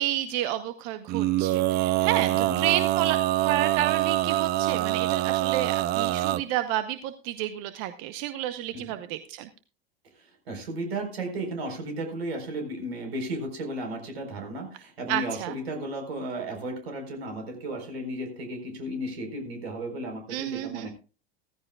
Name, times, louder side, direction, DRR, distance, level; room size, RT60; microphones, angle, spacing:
voice 1, 0.0-9.5 15.1-15.5 20.3-20.9, right 13 dB, 50° right, 11 dB, 0.9 m, -30 dB
Male singing, 1.1-6.4, right 15 dB, 30° right, 0.5 m, -25 dB
voice 2, 10.1-20.9, right 1 dB, 75° right, 4 dB, 4.4 m, -34 dB
16.0 x 15.0 x 2.4 m, 0.35 s
hypercardioid pair, 85°, 31 cm